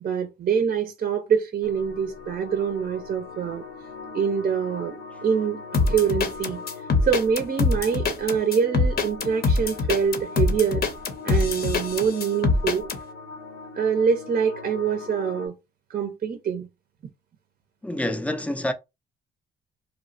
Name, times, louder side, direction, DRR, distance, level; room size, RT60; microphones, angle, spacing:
voice 1, 0.0-3.6 4.1-4.9 5.2-5.6 5.9-6.6 7.0-10.8 11.2-12.8 13.8-15.5 15.9-16.7, right 7 dB, 45° right, 0.6 m, -25 dB
sound 1, 1.6-15.5, left 4 dB, 80° left, 0.8 m, -40 dB
sound 2, 5.7-13.0, left 3 dB, 50° left, 0.7 m, -23 dB
voice 2, 17.8-18.7, left 1 dB, 5° left, 0.4 m, -27 dB
2.9 x 2.1 x 2.5 m
cardioid pair, 90°, 20 cm